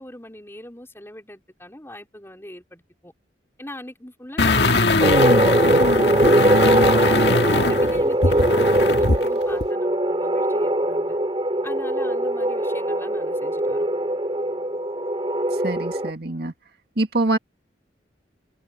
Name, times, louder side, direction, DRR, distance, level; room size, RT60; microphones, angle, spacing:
voice 1, 0.0-3.1 3.6-6.1 6.6-11.2 11.6-13.9, left 1 dB, 15° left, 4.7 m, -40 dB
sound 1, 4.4-9.3 9.6-9.7, left 2 dB, 70° left, 1.8 m, -21 dB
sound 2, 5.0-16.1, right 1 dB, 30° right, 3.3 m, -21 dB
voice 2, 15.6-16.5 17.0-17.4, right 2 dB, 60° right, 2.3 m, -24 dB
head